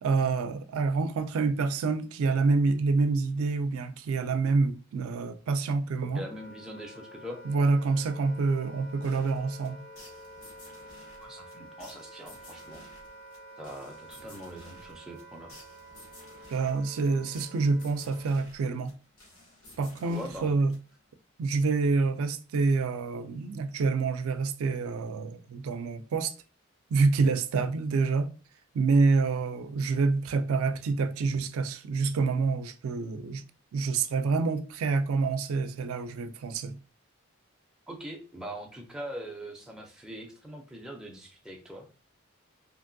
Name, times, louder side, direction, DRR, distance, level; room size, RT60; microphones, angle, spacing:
voice 1, 0.0-6.2 7.4-9.8 16.5-18.9 19.8-20.7 21.4-26.3 26.9-28.3 28.7-33.4 33.7-36.8, right 4 dB, 85° right, 0.3 m, -27 dB
Wind instrument woodwind instrument, 5.9-18.5, equal, 50° left, 0.5 m, -49 dB
voice 2, 6.1-7.4 11.2-12.8 13.6-15.6 20.0-20.5 37.9-41.9, equal, 5° right, 0.4 m, -42 dB
sound 1, 9.0-21.2, left 2 dB, 85° left, 1.1 m, -54 dB
2.8 x 2.5 x 2.5 m
head